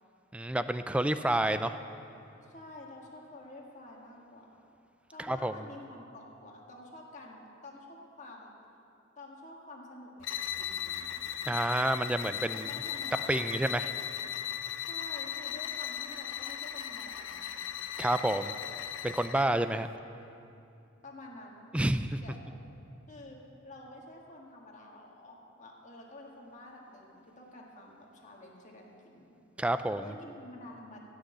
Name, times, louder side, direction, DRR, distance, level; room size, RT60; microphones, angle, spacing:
voice 1, 0.3-1.8 5.2-5.5 11.5-12.7 13.3-13.9 18.0-18.5 19.0-19.9 21.7-22.2 29.6-30.0, right 1 dB, 5° right, 11 dB, 0.3 m, -29 dB
voice 2, 2.4-4.7 5.1-8.5 9.1-11.1 12.5-13.5 14.8-17.5 21.0-21.7 22.2-22.5 23.1-29.3 30.0-31.0, left 1 dB, 35° left, -1 dB, 1.7 m, -49 dB
sound 1, 10.2-19.6, left 10 dB, 65° left, 0.5 m, -37 dB
15.5 x 6.4 x 8.0 m, 2.6 s
head